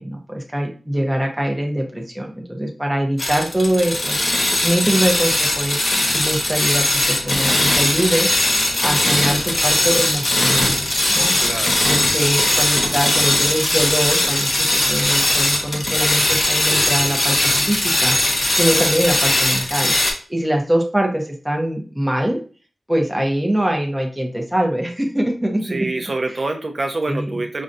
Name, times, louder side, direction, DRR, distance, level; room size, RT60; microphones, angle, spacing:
voice 1, 0.0-5.8 6.1-8.3 8.8-10.8 11.2-11.3 11.9-18.2 18.5-19.9 20.3-22.4 22.9-25.8 27.1-27.3, right 1 dB, 10° right, 0 dB, 0.7 m, -23 dB
sound 1, 3.2-20.1, left 1 dB, 50° left, 0.8 m, -19 dB
voice 2, 11.4-11.9 12.3-12.5 25.6-27.6, right 2 dB, 50° right, 5 dB, 0.6 m, -26 dB
5.1 x 2.3 x 2.6 m, 0.38 s
wide cardioid pair, 75°, 0 cm